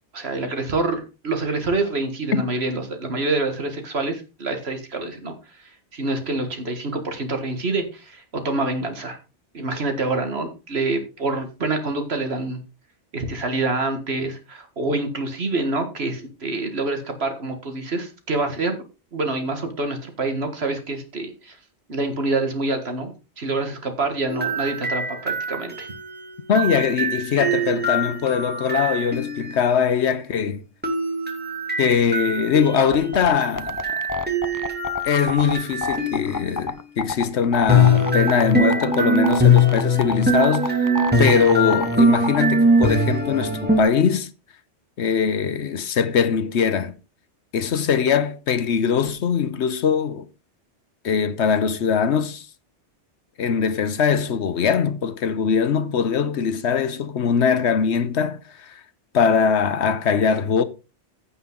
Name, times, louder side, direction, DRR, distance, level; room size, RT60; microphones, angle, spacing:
voice 1, 0.1-5.3 5.9-9.2 9.5-12.6 13.1-18.8 19.1-21.6 21.9-25.9, right 2 dB, 65° right, 2.0 m, -26 dB
sound 1, 24.3-29.6 30.8-36.6 37.7-43.8, left 1 dB, 10° right, 2.3 m, -22 dB
voice 2, 26.5-30.6 31.8-34.0 35.0-40.9 41.2-44.3 45.0-46.9 47.5-50.3 51.0-52.5 53.4-58.8 59.1-60.6, left 6 dB, 75° left, 1.1 m, -21 dB
sound 2, 32.9-42.4, left 3 dB, 20° left, 0.6 m, -28 dB
15.5 x 5.6 x 3.9 m
omnidirectional pair, 1.2 m